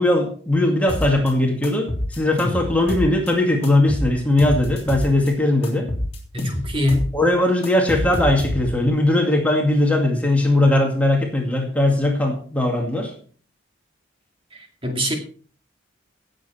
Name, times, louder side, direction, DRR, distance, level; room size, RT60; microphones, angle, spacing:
voice 1, 0.0-5.9 7.1-13.1, left 1 dB, 5° left, 0 dB, 2.1 m, -19 dB
sound 1, 0.9-1.3 1.6-3.3 3.6-5.3 5.6-7.1 7.4-8.9, left 1 dB, 30° left, 3.3 m, -27 dB
voice 2, 6.3-7.1 14.5-15.2, left 1 dB, 30° right, 3 dB, 2.3 m, -23 dB
18.0 x 7.6 x 4.3 m, 0.43 s
head